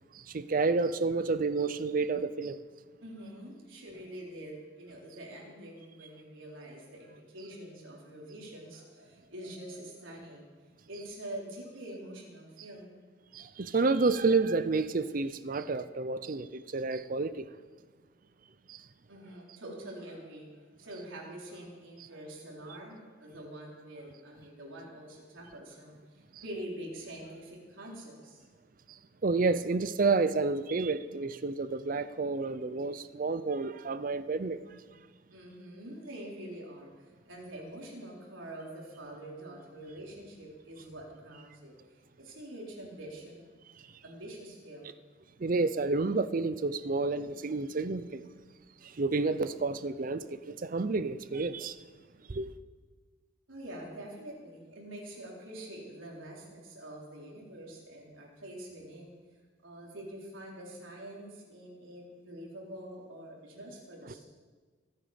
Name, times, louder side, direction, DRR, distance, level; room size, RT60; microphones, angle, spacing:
voice 1, 0.1-2.6 13.3-17.5 18.7-18.8 26.3-26.4 28.9-34.8 45.4-48.2 48.8-51.8 52.3-52.5, right 3 dB, 45° right, 0.5 m, -30 dB
voice 2, 3.0-10.5 10.9-13.0 19.1-28.4 35.3-43.5 44.0-44.9 53.5-59.1 59.6-64.3, right 1 dB, 85° right, 4.1 m, -45 dB
24.5 x 8.9 x 5.2 m
head